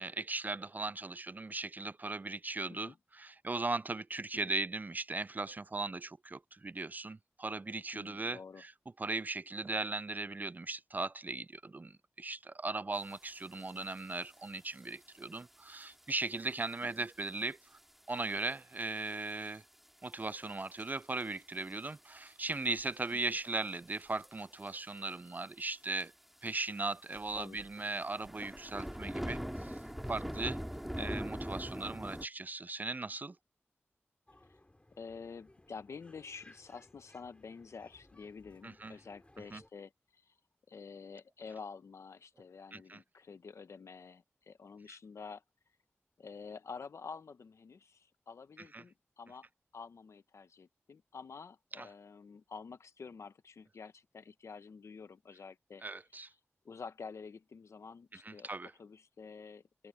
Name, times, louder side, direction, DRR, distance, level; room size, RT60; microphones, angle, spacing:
voice 1, 0.0-8.7 9.0-17.6 18.1-19.6 20.0-26.1 26.4-29.8 30.1-30.6 31.0-33.4 38.6-38.9 39.5-39.6 42.7-43.0 48.7-48.8 51.8-51.9 55.8-56.3 58.2-58.7, right 3 dB, 35° right, 0.4 m, -38 dB
voice 2, 7.9-8.6 13.6-13.9 16.8-17.1 23.1-23.4 27.4-27.6 29.0-29.3 31.0-31.2 34.5-34.6 35.0-40.3 40.7-45.4 46.2-49.5 49.7-55.8 56.6-58.5 58.8-59.9, left 5 dB, 90° left, 1.0 m, -49 dB
sound 1, 13.6-13.7 14.0-14.3 15.0-15.2 15.8-15.9 16.5-16.6 17.0-17.1 17.3-17.4 18.5-18.7 19.1-19.2 20.1-20.2 20.8-21.2 21.6-21.7 22.3-22.9 24.0-24.3 24.6-24.7 25.0-25.1 25.3-25.4 26.0-26.1 26.5-26.6 27.1-32.3, equal, 5° right, 2.3 m, -41 dB
sound 2, 34.3-39.7, left 1 dB, 25° left, 3.9 m, -62 dB
cardioid pair, 45°, 5 cm